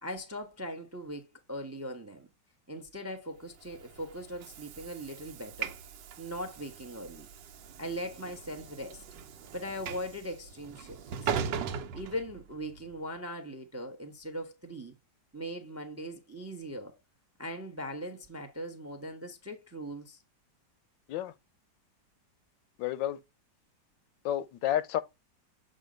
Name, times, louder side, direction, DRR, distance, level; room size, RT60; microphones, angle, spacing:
voice 1, 0.0-2.3 2.7-5.8 6.2-7.3 7.8-9.0 9.5-11.3 11.9-15.0 15.3-17.0 17.4-20.2, equal, 15° right, 0.5 m, -40 dB
Train / Sliding door, 3.6-12.8, right 7 dB, 80° right, 1.3 m, -40 dB
voice 2, 22.8-23.2 24.2-25.0, left 12 dB, 90° left, 1.3 m, -30 dB
7.6 x 2.6 x 5.0 m
omnidirectional pair, 2.0 m